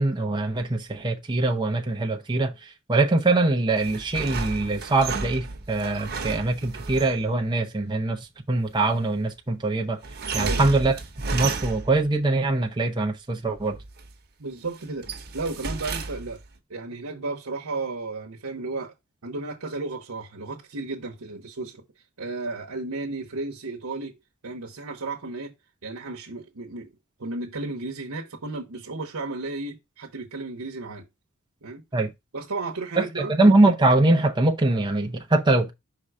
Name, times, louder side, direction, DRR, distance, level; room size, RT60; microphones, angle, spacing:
voice 1, 0.0-10.0 10.3-10.9 11.3-13.8 31.9-32.1 33.0-35.7, right 2 dB, 20° right, 0.7 m, -23 dB
sound 1, 3.8-7.3 10.0-12.1 13.6-14.1 14.6-16.5, right 4 dB, 50° right, 1.1 m, -32 dB
voice 2, 14.4-16.4 16.7-18.9 19.2-21.8 22.2-24.2 24.4-25.5 25.8-26.9 27.2-31.0 31.6-31.8 32.3-33.3, right 3 dB, 85° right, 1.0 m, -33 dB
5.5 x 3.8 x 4.8 m
head